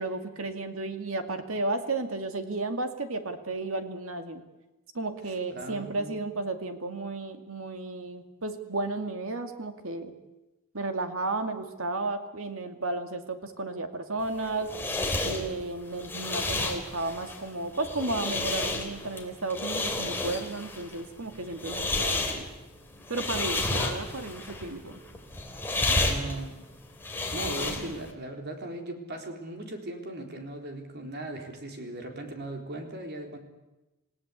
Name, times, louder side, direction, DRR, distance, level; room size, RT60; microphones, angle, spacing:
voice 1, 0.0-4.4 4.9-10.1 10.7-14.7 15.2-22.5 23.1-25.0 27.4-27.9, right 2 dB, 70° right, 7 dB, 2.4 m, -33 dB
voice 2, 5.5-6.2 23.6-23.9 25.9-26.6 27.3-33.4, right 1 dB, 50° right, 3 dB, 3.9 m, -38 dB
sound 1, 14.2-28.1, left 2 dB, 10° left, 3.2 m, -31 dB
27.5 x 17.5 x 8.3 m, 1.0 s
head